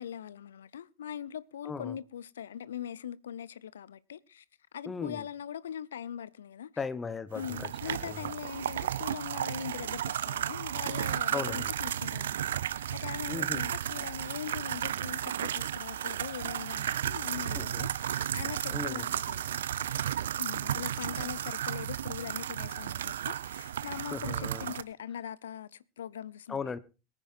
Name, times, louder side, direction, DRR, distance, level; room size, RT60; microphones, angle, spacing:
voice 1, 0.0-4.4 4.7-6.7 7.3-19.7 20.4-26.7, left 9 dB, 75° left, 0.5 m, -41 dB
voice 2, 1.6-2.0 4.9-5.3 6.8-8.3 11.3-11.7 13.3-13.6 17.5-17.9 18.7-19.1 24.1-24.7 26.5-26.8, left 5 dB, 20° left, 0.9 m, -37 dB
sound 1, 7.3-24.8, right 10 dB, 70° right, 0.5 m, -33 dB
22.5 x 9.8 x 2.5 m
figure-of-eight pair, 80°, 0 cm